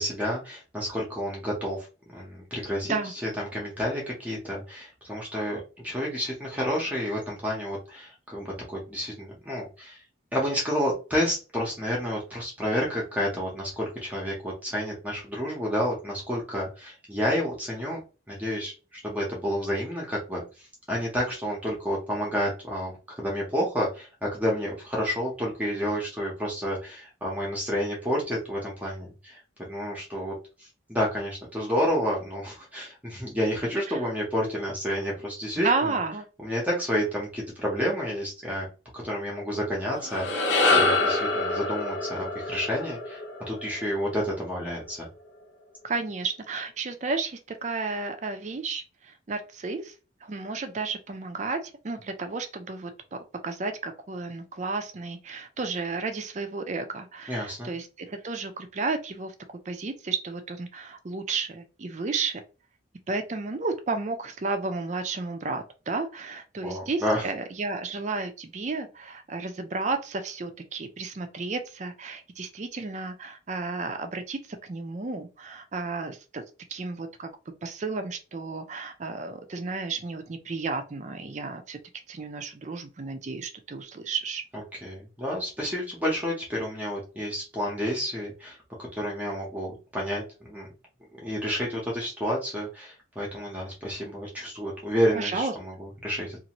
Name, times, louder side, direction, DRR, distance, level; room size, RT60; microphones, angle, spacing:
voice 1, 0.0-2.9 3.2-10.0 10.3-18.0 18.3-29.4 29.7-35.9 36.4-38.7 38.9-43.2 43.5-45.1 57.3-57.7 66.6-67.2 84.7-90.7 91.1-96.4, equal, 10° right, -3 dB, 0.8 m, -30 dB
voice 2, 35.6-36.3 45.8-50.0 50.2-59.3 59.7-62.4 63.1-76.4 76.7-77.3 77.6-81.8 82.1-84.4 95.1-95.5, right 4 dB, 40° right, 7 dB, 0.4 m, -32 dB
sound 1, 39.9-44.4, left 3 dB, 70° left, 0.8 m, -26 dB
2.6 x 2.5 x 2.9 m, 0.33 s
head